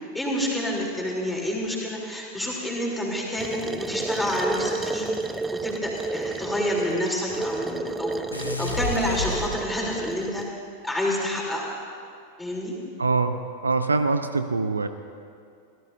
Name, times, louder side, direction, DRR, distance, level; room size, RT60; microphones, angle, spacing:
voice 1, 0.1-5.1 5.5-10.5 10.8-11.7 12.4-12.8, left 1 dB, 5° left, -3 dB, 3.5 m, -28 dB
sound 1, 3.4-10.5, right 3 dB, 10° right, 0.4 m, -31 dB
sound 2, 8.3-10.1, left 2 dB, 85° left, 1.4 m, -30 dB
voice 2, 13.0-14.9, right 3 dB, 75° right, 10 dB, 0.6 m, -24 dB
25.0 x 17.0 x 2.7 m, 2.3 s
figure-of-eight pair, 90°, 0 cm